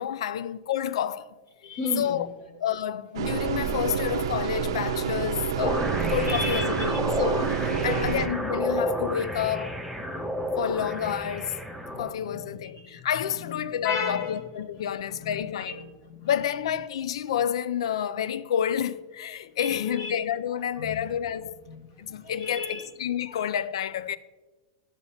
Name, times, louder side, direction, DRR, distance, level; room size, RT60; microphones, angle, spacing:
voice 1, 0.0-1.3 2.0-2.3 2.6-9.7 10.6-11.6 11.9-15.8 16.3-21.6 22.0-24.2, left 9 dB, 80° left, 0.3 m, -29 dB
voice 2, 1.6-2.3 6.3-7.0 7.8-8.2 11.9-13.0 13.4-13.6 13.8-14.4 15.1-16.3 19.6-20.2 20.8-21.0 21.7-21.8 22.1-22.8, left 3 dB, 40° left, 1.0 m, -35 dB
sound 1, 3.1-8.3, right 7 dB, 65° right, 0.5 m, -28 dB
sound 2, 5.6-12.1, equal, ahead, 0.3 m, -30 dB
10.5 x 6.7 x 2.8 m
supercardioid pair, 175°, 3 cm